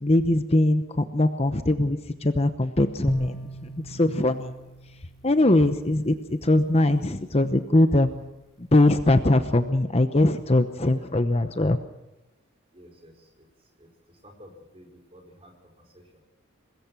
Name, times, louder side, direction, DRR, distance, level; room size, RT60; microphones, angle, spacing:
voice 1, 0.0-4.5 5.2-8.2 8.7-11.8, left 1 dB, 30° left, 9 dB, 0.9 m, -21 dB
sound 1, 3.1-6.3, equal, ahead, 4.3 m, -36 dB
voice 2, 12.7-13.5 13.8-16.2, equal, 25° right, 1 dB, 4.6 m, -52 dB
24.5 x 20.5 x 6.1 m, 1.0 s
head